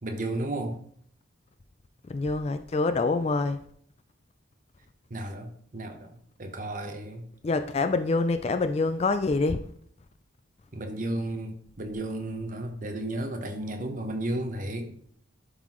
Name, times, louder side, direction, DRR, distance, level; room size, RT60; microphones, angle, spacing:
voice 1, 0.0-0.8 5.1-6.1 6.4-7.3 10.7-15.1, right 1 dB, 40° right, 0.9 m, -33 dB
voice 2, 2.1-3.6 7.4-9.6, left 3 dB, 30° left, 0.3 m, -26 dB
11.0 x 4.0 x 3.0 m
head